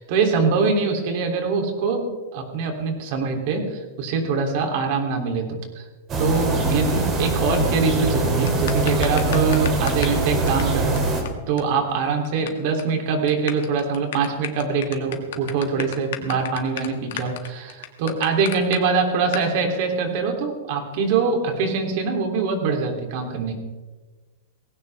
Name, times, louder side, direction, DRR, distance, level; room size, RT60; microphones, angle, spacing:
voice 1, 0.0-2.1 2.3-5.8 6.2-11.0 11.5-23.5, right 5 dB, 50° right, 3 dB, 3.2 m, -23 dB
sound 1, 6.1-11.2, right 2 dB, 25° right, 3.2 m, -22 dB
sound 2, 8.5-10.2 10.5-10.6 11.0-11.1 11.3-11.4 11.6-11.7 11.9-12.5 12.8-12.9 13.3-18.8 19.3-19.5, left 12 dB, 70° left, 1.9 m, -32 dB
19.0 x 16.5 x 3.6 m, 1.3 s
supercardioid pair, 155°, 0 cm